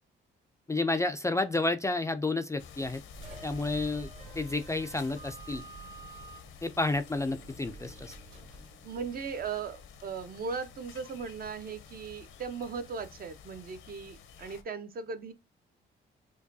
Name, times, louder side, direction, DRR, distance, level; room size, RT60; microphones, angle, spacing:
voice 1, 0.7-3.0 3.4-4.1 4.4-5.6 6.6-8.1, left 2 dB, 15° left, 0.3 m, -30 dB
sound 1, 2.6-14.6, left 7 dB, 80° left, 0.7 m, -51 dB
sound 2, 3.1-9.6, right 4 dB, 80° right, 1.3 m, -49 dB
voice 2, 8.8-15.3, right 5 dB, 50° right, 0.7 m, -38 dB
4.7 x 2.2 x 2.6 m
cardioid pair, 90°, 20 cm